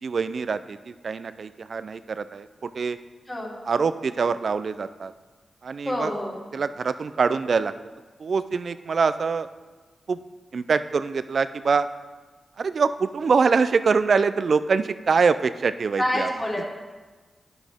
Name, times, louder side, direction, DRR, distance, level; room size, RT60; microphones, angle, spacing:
voice 1, 0.0-3.0 3.7-5.1 5.6-6.1 6.5-7.7 8.2-9.5 10.1-10.2 10.5-11.9 12.6-16.3, right 5 dB, 65° right, 13 dB, 0.4 m, -24 dB
voice 2, 5.8-6.3 16.0-16.8, left 1 dB, 20° left, -5 dB, 3.3 m, -27 dB
9.7 x 9.0 x 3.5 m, 1.3 s
cardioid pair, 55°, 0 cm